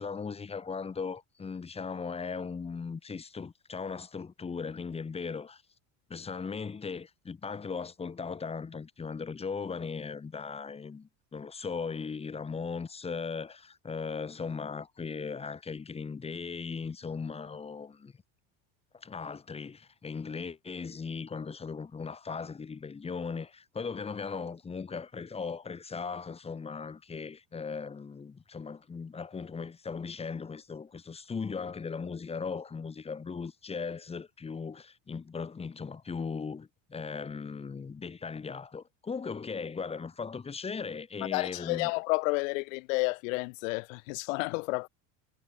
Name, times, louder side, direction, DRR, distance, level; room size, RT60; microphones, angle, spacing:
voice 1, 0.0-5.6 6.1-18.1 18.9-41.9, left 5 dB, 15° left, 2.5 m, -38 dB
voice 2, 41.3-44.9, left 28 dB, 85° left, 1.6 m, -31 dB
cardioid pair, 155°, 38 cm